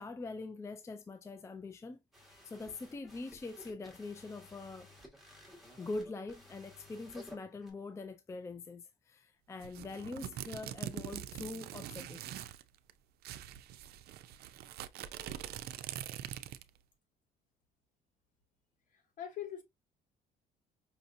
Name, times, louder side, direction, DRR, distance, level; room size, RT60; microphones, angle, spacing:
voice 1, 0.0-2.0 2.4-4.9 5.8-12.3, left 3 dB, 15° left, 0.4 m, -43 dB
sound 1, 2.1-7.7, left 1 dB, ahead, 1.7 m, -56 dB
sound 2, 9.6-12.6 12.9-13.0 13.2-16.8, right 11 dB, 70° right, 0.5 m, -44 dB
voice 2, 18.9-19.6, left 10 dB, 50° left, 1.6 m, -43 dB
5.4 x 2.7 x 2.6 m
cardioid pair, 110°, 17 cm